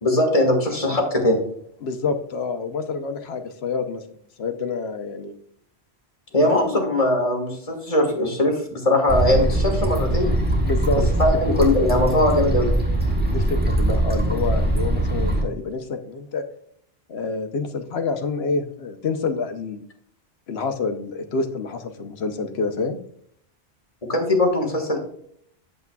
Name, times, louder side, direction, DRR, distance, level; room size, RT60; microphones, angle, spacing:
voice 1, 0.0-1.4 6.3-10.3 11.2-12.7 24.1-25.0, left 1 dB, 35° left, 1 dB, 1.8 m, -20 dB
voice 2, 1.8-4.0 4.4-5.3 6.4-6.7 10.6-11.0 13.3-16.4 17.1-19.8 20.5-23.0, left 4 dB, 75° left, 7 dB, 1.1 m, -27 dB
sound 1, 9.1-15.4, right 1 dB, 10° right, 1.4 m, -22 dB
8.1 x 7.6 x 2.3 m, 0.66 s
omnidirectional pair, 1.1 m